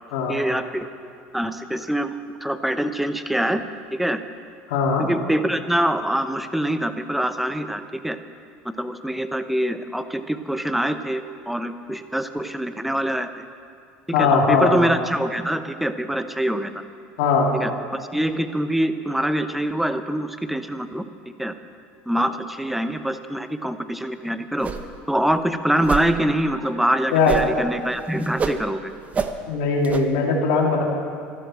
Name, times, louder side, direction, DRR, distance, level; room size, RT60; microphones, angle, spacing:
voice 1, 0.3-0.9 1.3-2.1 2.4-3.6 3.9-4.2 5.0-8.2 8.6-13.4 14.2-16.7 17.6-17.7 18.1-21.0 21.4-21.5 22.1-24.7 25.1-28.9, right 1 dB, 5° right, 10 dB, 0.9 m, -24 dB
voice 2, 4.7-5.1 14.1-14.7 17.2-17.5 27.1-27.3 29.5-30.8, left 4 dB, 80° left, -1 dB, 2.6 m, -19 dB
sound 1, 24.6-25.0 25.3-25.4 25.8-26.1 27.3-27.7 27.9-28.6 29.1-29.3 29.8-30.0, right 5 dB, 30° right, 1.0 m, -27 dB
13.5 x 12.5 x 7.5 m, 2.3 s
supercardioid pair, 105°, 5 cm